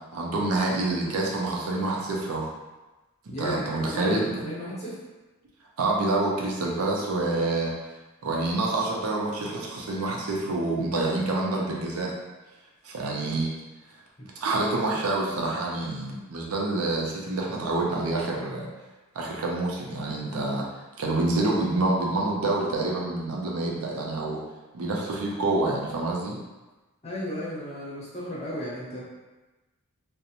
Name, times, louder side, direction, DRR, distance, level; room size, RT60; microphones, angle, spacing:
voice 1, 0.1-2.5 3.4-4.4 5.8-7.7 8.2-12.1 12.8-13.6 14.4-18.7 19.2-20.6 21.0-24.4 24.7-26.4, right 2 dB, 75° right, -2 dB, 0.5 m, -27 dB
voice 2, 3.3-5.0 27.0-29.0, equal, 30° left, -8 dB, 0.8 m, -34 dB
2.5 x 2.0 x 2.8 m, 1.2 s
head